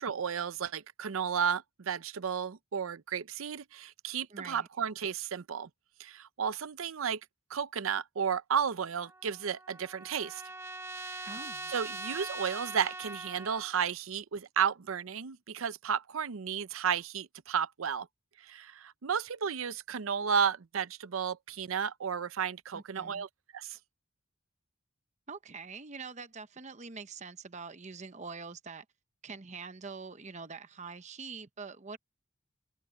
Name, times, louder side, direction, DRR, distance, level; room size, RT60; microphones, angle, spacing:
voice 1, 0.0-5.7 6.0-7.2 7.5-10.4 11.0-11.3 11.7-18.1 18.4-23.3 23.5-23.8, right 7 dB, 85° right, 0.6 m, -33 dB
voice 2, 4.3-4.7 11.2-11.7 22.7-23.3 25.3-28.8 29.2-32.0, right 4 dB, 35° right, 0.8 m, -44 dB
Trumpet, 9.0-13.7, right 2 dB, 15° right, 1.2 m, -42 dB
open air
head